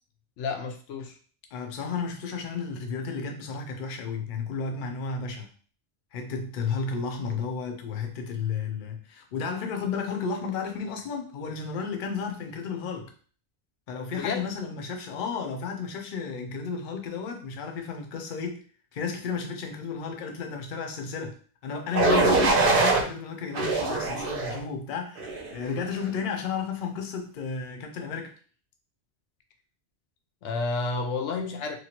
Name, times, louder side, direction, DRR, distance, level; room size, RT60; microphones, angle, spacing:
voice 1, 0.4-1.2 14.1-14.5 22.0-22.3 30.4-31.8, left 4 dB, 90° left, 0.9 m, -30 dB
voice 2, 1.5-5.5 6.1-13.1 13.9-18.6 18.9-21.4 21.6-28.3, left 5 dB, 55° left, 0.6 m, -33 dB
sound 1, 21.9-23.0 23.5-24.6 25.2-25.5, right 3 dB, 55° right, 0.7 m, -23 dB
3.0 x 2.4 x 2.8 m
omnidirectional pair, 1.2 m